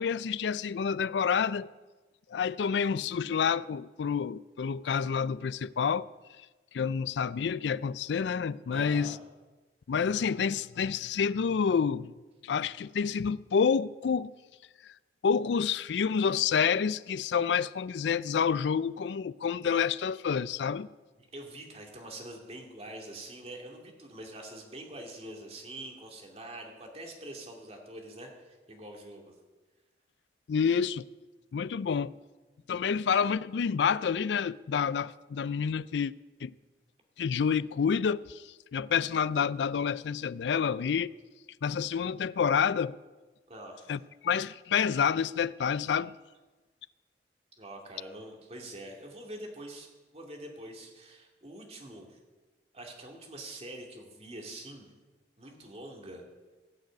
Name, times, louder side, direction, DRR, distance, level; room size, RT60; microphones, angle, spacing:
voice 1, 0.0-1.7 2.3-6.1 6.7-9.2 9.9-12.1 12.4-14.3 14.8-14.9 15.2-20.9 30.5-31.0 31.5-32.1 32.7-36.1 36.4-36.5 37.2-41.1 41.6-42.9 43.9-46.1, left 6 dB, 75° left, 0.4 m, -28 dB
voice 2, 8.7-9.2 21.2-29.3 43.5-44.0 47.6-52.2 52.7-54.9 55.4-56.2, right 1 dB, 35° right, 2.4 m, -45 dB
17.5 x 6.5 x 8.4 m
head